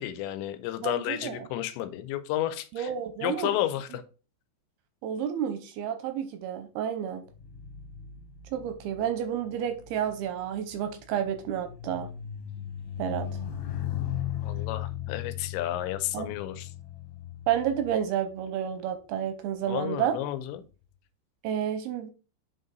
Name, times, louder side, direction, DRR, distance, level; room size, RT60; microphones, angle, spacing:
voice 1, 0.0-2.9 3.2-4.0 14.4-16.7 19.7-20.6, left 13 dB, 90° left, 3.0 m, -32 dB
voice 2, 0.8-1.4 2.7-3.6 5.0-7.2 8.5-12.1 13.0-13.3 16.1-16.3 17.5-20.2 21.4-22.1, right 9 dB, 80° right, 2.4 m, -30 dB
sound 1, 7.2-18.9 19.6-19.9, left 10 dB, 65° left, 2.9 m, -38 dB
8.1 x 3.9 x 4.0 m
omnidirectional pair, 5.0 m